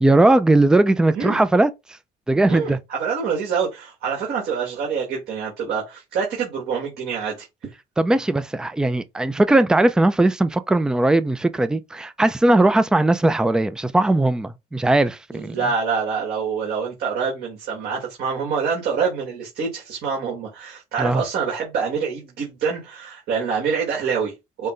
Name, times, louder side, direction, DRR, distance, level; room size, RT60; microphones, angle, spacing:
voice 1, 0.0-1.7 2.3-2.8 8.0-15.6 21.0-21.2, right 2 dB, 5° right, 0.4 m, -18 dB
voice 2, 2.5-7.5 15.3-24.7, right 6 dB, 70° right, 1.7 m, -26 dB
5.5 x 2.2 x 3.7 m
cardioid pair, 110°, 17 cm